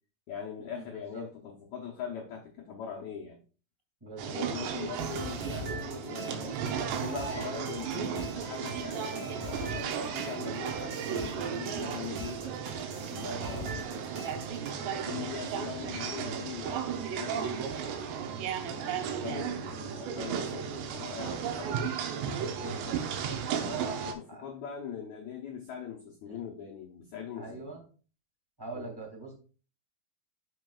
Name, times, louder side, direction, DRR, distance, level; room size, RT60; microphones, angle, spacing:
voice 1, 0.3-3.4 4.2-6.6 7.0-12.5 13.4-14.0 14.8-18.0 18.6-21.7 22.5-23.4 23.9-27.7 28.7-28.9, left 7 dB, 90° left, -2 dB, 1.6 m, -42 dB
voice 2, 4.0-4.8 13.1-14.2 19.7-20.2 22.5-23.0 23.6-24.0 24.3-24.5 26.2-26.4 27.3-27.8 28.6-29.3, right 2 dB, 15° right, -1 dB, 0.9 m, -43 dB
sound 1, 4.2-24.1, right 7 dB, 85° right, 3.1 m, -35 dB
sound 2, 5.0-14.7, right 2 dB, 60° right, 1.7 m, -42 dB
12.0 x 5.2 x 2.4 m, 0.37 s
omnidirectional pair, 4.8 m